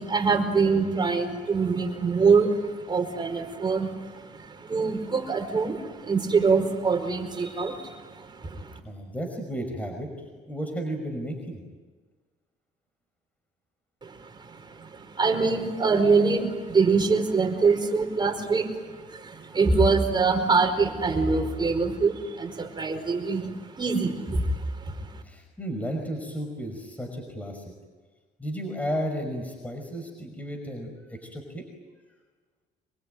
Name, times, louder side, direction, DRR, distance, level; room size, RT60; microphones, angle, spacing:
voice 1, 0.0-8.8 14.0-25.2, right 4 dB, 25° right, 5 dB, 4.8 m, -25 dB
voice 2, 8.8-11.6 25.2-27.6 28.4-31.6, equal, 10° left, 3 dB, 5.6 m, -33 dB
25.5 x 23.0 x 9.4 m, 1.4 s
cardioid pair, 110°, 17 cm